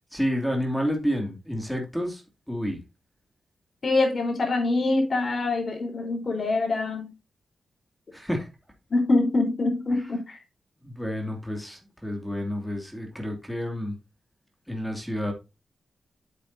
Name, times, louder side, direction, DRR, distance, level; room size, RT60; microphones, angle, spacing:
voice 1, 0.1-2.2 2.5-2.8 8.1-8.5 10.8-13.9 14.7-15.3, equal, ahead, 2.6 m, -29 dB
voice 2, 3.8-7.1 8.9-10.4, left 2 dB, 50° left, 4.0 m, -24 dB
8.5 x 7.8 x 2.7 m
cardioid pair, 60°, 0 cm